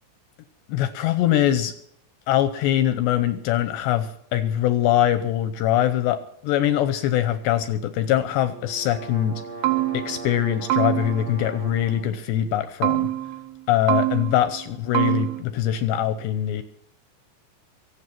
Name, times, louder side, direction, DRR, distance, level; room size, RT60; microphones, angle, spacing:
voice 1, 0.7-1.7 2.3-9.4 9.9-13.1 13.7-16.6, left 11 dB, 75° left, 10 dB, 2.7 m, -23 dB
sound 1, 8.2-12.1, right 3 dB, 55° right, 10.0 m, -39 dB
sound 2, 9.3-9.4 9.6-10.3 10.7-11.4 12.8-13.5 13.9-14.6 15.0-15.4, right 17 dB, 80° right, 2.4 m, -25 dB
23.5 x 8.3 x 5.9 m, 0.70 s
omnidirectional pair, 5.7 m